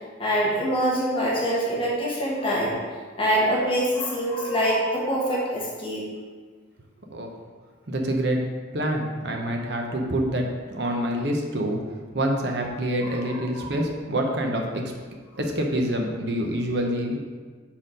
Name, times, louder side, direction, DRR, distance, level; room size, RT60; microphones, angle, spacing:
voice 1, 0.2-2.8 3.2-6.1 13.0-13.7, equal, 30° left, -5 dB, 1.3 m, -25 dB
voice 2, 7.9-8.4 8.7-11.8 12.1-14.9 15.4-17.2, right 1 dB, 60° right, 2 dB, 0.9 m, -26 dB
5.6 x 4.5 x 5.0 m, 1.5 s
head